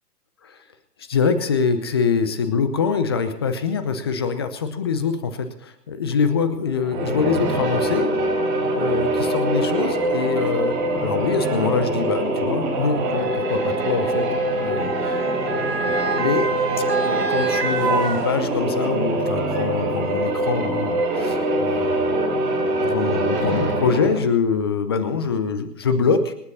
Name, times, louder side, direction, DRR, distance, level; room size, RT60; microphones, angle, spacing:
voice 1, 1.0-8.1 8.7-10.7 11.0-14.3 14.5-15.8 16.2-16.5 17.0-22.1 22.8-26.3, left 5 dB, 15° left, 10 dB, 0.8 m, -24 dB
sound 1, 6.8-24.3, right 1 dB, 30° right, 5.1 m, -23 dB
Motor vehicle (road) / Siren, 9.0-9.1 10.0-10.2 11.3-18.9 19.3-19.4, right 4 dB, 90° right, 2.2 m, -29 dB
26.5 x 9.6 x 4.2 m, 0.74 s
figure-of-eight pair, 145°, 48 cm